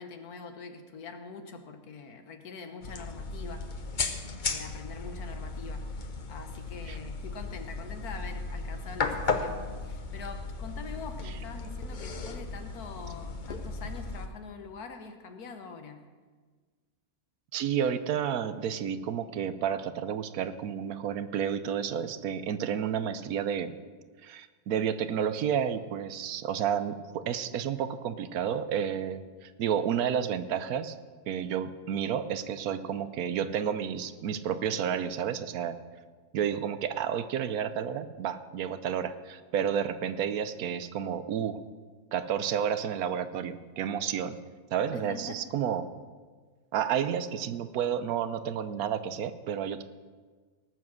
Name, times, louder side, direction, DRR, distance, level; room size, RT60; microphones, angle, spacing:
voice 1, 0.0-3.7 3.9-4.1 4.5-5.9 6.3-16.0 44.9-45.4, left 5 dB, 90° left, 6 dB, 1.6 m, -44 dB
sound 1, 2.8-14.3, left 4 dB, 40° left, 0.8 m, -35 dB
voice 2, 17.5-23.7 24.2-31.0 31.3-35.8 36.3-41.6 42.1-44.4 44.7-45.9 46.7-49.8, right 8 dB, 80° right, 12 dB, 1.2 m, -31 dB
18.5 x 7.3 x 6.2 m, 1.5 s
omnidirectional pair, 1.5 m